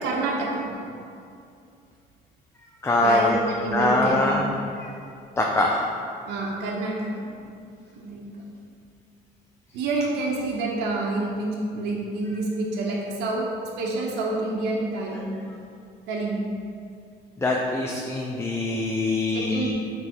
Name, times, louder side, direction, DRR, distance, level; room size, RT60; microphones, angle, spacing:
voice 1, 0.0-0.7 3.0-4.5 6.3-7.3 7.9-8.2 9.7-13.5 13.8-15.3 16.1-16.3 19.3-19.7, right 2 dB, 85° right, -3 dB, 1.0 m, -28 dB
voice 2, 2.8-3.3 3.7-4.4 5.4-5.8 17.4-19.7, left 2 dB, 15° left, -1 dB, 0.6 m, -23 dB
8.1 x 3.5 x 4.5 m, 2.4 s
cardioid pair, 110°, 17 cm